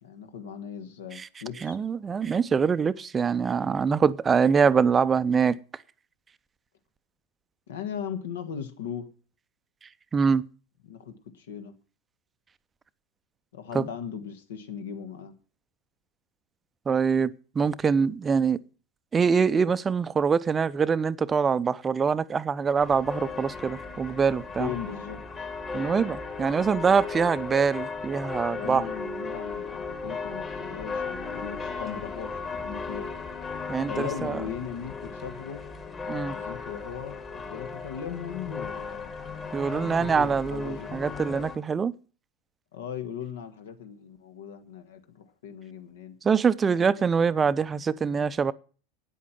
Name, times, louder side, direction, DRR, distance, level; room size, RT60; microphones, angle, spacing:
voice 1, 0.0-1.8 7.7-9.1 10.8-11.7 13.5-15.3 24.6-25.2 28.5-33.1 33.9-35.6 36.1-39.1 39.8-40.9 42.7-46.1 46.7-47.5, left 8 dB, 70° left, 1.6 m, -38 dB
voice 2, 1.6-5.6 10.1-10.4 13.7-13.8 16.9-18.6 19.1-24.7 25.7-28.9 33.7-34.4 36.1-36.3 39.5-41.9 46.2-48.5, right 6 dB, 25° right, 0.6 m, -24 dB
sound 1, 22.8-41.6, left 4 dB, 25° left, 2.0 m, -36 dB
9.5 x 8.3 x 7.3 m
figure-of-eight pair, 85°, 0 cm